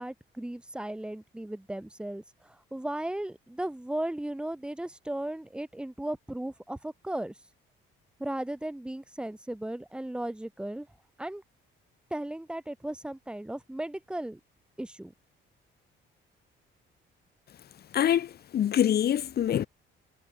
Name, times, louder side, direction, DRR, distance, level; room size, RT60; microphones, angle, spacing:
voice 1, 0.0-7.3 8.2-10.9 11.2-11.4 12.1-14.4 14.8-15.1, right 1 dB, 5° right, 1.2 m, -36 dB
voice 2, 17.9-19.7, left 10 dB, 50° left, 1.1 m, -25 dB
cardioid pair, 155°, 21 cm